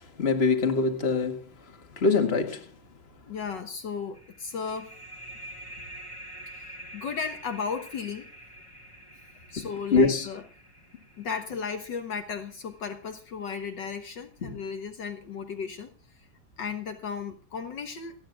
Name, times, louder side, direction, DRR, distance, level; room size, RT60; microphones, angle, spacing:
voice 1, 0.0-2.7 9.6-10.3 14.4-14.6, left 4 dB, 30° left, 2.0 m, -25 dB
voice 2, 3.3-4.9 6.5-8.3 9.5-10.4 11.2-15.9 16.6-18.1, left 6 dB, 65° left, 1.9 m, -35 dB
sound 1, 4.1-13.4, right 1 dB, 15° left, 2.1 m, -47 dB
28.5 x 9.6 x 2.4 m
omnidirectional pair, 2.1 m